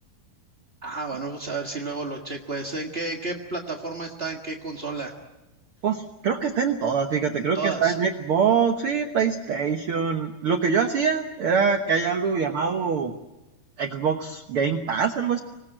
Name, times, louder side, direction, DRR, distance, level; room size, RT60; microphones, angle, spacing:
voice 1, 0.8-5.1 7.3-7.9, right 3 dB, 55° right, 2 dB, 0.6 m, -32 dB
voice 2, 5.8-13.1 13.8-15.4, right 6 dB, 90° right, 6 dB, 1.2 m, -24 dB
26.0 x 20.0 x 8.8 m, 1.0 s
omnidirectional pair, 4.3 m